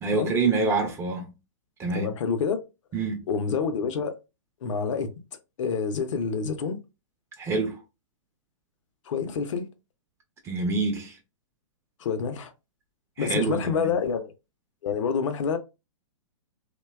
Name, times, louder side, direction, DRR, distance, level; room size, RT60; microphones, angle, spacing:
voice 1, 0.0-1.3 1.8-2.1 2.9-3.2 7.4-7.8 10.4-11.2 13.2-13.9, right 4 dB, 15° right, 0.4 m, -26 dB
voice 2, 1.9-2.6 3.3-4.2 4.6-5.1 5.6-6.8 9.1-9.7 12.0-12.5 13.2-14.3 14.8-15.6, left 6 dB, 65° left, 0.6 m, -27 dB
2.7 x 2.2 x 2.2 m
hypercardioid pair, 135°, 17 cm